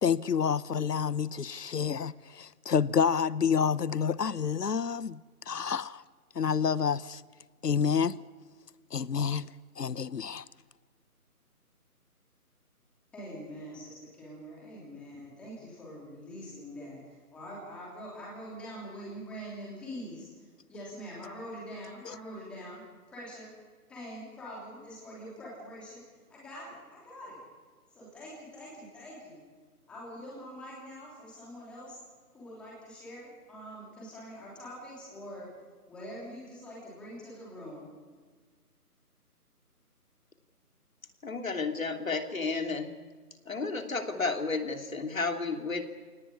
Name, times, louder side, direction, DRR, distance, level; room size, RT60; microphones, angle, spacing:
voice 1, 0.0-5.2 5.5-6.0 6.4-7.2 7.6-8.2 8.9-9.5 9.8-10.4, left 7 dB, 85° left, 19 dB, 1.0 m, -28 dB
voice 2, 13.1-23.5 23.9-26.0 26.3-27.4 27.9-29.4 29.9-32.0 32.3-35.5 35.9-37.9, equal, ahead, -6 dB, 3.1 m, -44 dB
voice 3, 41.2-43.0 43.4-45.8, left 4 dB, 60° left, 5 dB, 3.1 m, -32 dB
27.0 x 18.5 x 9.9 m, 1.5 s
figure-of-eight pair, 170°, 46 cm